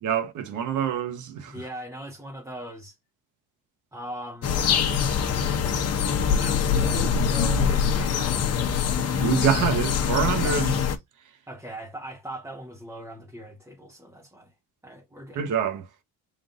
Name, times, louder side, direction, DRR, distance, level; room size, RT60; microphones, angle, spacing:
voice 1, 0.0-1.6 9.1-10.7 15.3-15.9, right 8 dB, 65° right, 1.0 m, -26 dB
voice 2, 1.5-3.0 3.9-5.0 6.4-8.6 10.4-11.0 11.5-14.5 14.8-15.4, right 1 dB, 10° right, 0.7 m, -39 dB
sound 1, 4.4-11.0, left 7 dB, 50° left, 0.8 m, -24 dB
3.7 x 2.5 x 3.6 m
cardioid pair, 125°, 33 cm